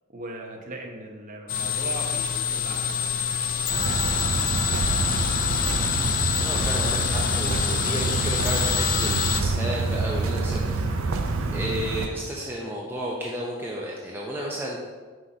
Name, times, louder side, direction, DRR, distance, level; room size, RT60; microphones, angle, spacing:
voice 1, 0.1-3.1, right 1 dB, 40° right, 1 dB, 0.9 m, -38 dB
sound 1, 1.5-9.4, left 7 dB, 40° left, 0.4 m, -26 dB
sound 2, 3.7-12.1, right 3 dB, 85° right, 0.5 m, -27 dB
voice 2, 6.4-10.8 11.5-14.9, equal, 10° right, -4 dB, 0.5 m, -32 dB
5.6 x 4.8 x 3.9 m, 1.4 s
head